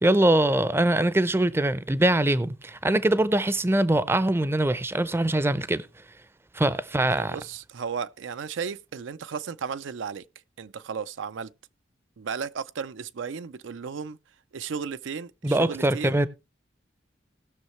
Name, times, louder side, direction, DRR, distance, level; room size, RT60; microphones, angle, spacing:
voice 1, 0.0-5.9 6.5-7.4 15.4-16.3, right 1 dB, 15° right, 0.5 m, -23 dB
voice 2, 7.1-10.2 10.6-11.5 12.2-14.2 14.5-16.2, right 6 dB, 85° right, 0.5 m, -34 dB
19.0 x 6.3 x 3.1 m
head